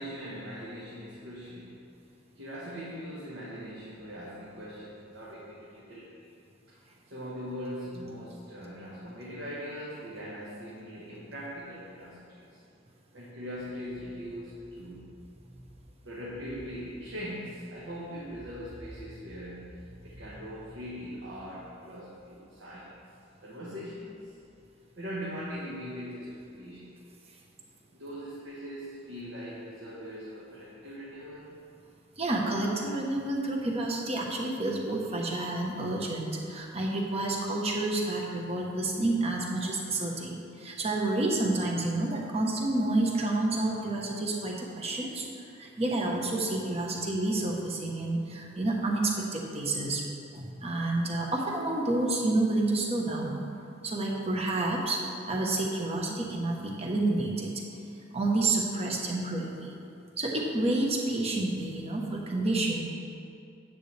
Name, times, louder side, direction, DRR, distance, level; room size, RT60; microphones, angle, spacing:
voice 1, 0.0-1.8 2.3-6.3 6.7-6.8 7.1-12.6 13.1-23.0 23.4-24.2 25.0-26.9 27.9-31.5, equal, 70° right, -7 dB, 1.5 m, -41 dB
voice 2, 32.2-45.3 45.6-50.0 50.3-53.4 53.8-57.5 58.1-59.7 60.2-62.8, right 2 dB, 30° right, -1 dB, 1.1 m, -29 dB
9.8 x 7.9 x 3.4 m, 2.5 s
head